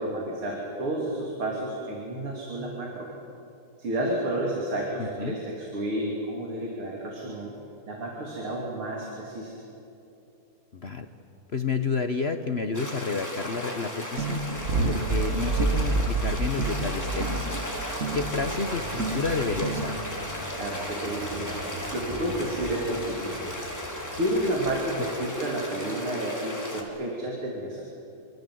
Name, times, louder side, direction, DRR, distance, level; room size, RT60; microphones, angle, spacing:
voice 1, 0.0-3.1 3.8-7.5 7.9-9.6 20.5-21.6 21.9-23.4 24.2-27.8, right 1 dB, 75° right, -2 dB, 4.0 m, -31 dB
voice 2, 5.0-5.4 10.7-11.1 11.5-14.4 14.9-17.6 18.1-20.0, left 4 dB, 45° left, 7 dB, 0.8 m, -30 dB
sound 1, 12.7-26.8, equal, 10° left, 3.3 m, -35 dB
sound 2, 14.2-20.4, right 3 dB, 40° right, 1.5 m, -29 dB
sound 3, 17.4-24.8, equal, 10° right, 4.7 m, -43 dB
26.5 x 25.0 x 7.9 m, 2.8 s
omnidirectional pair, 2.4 m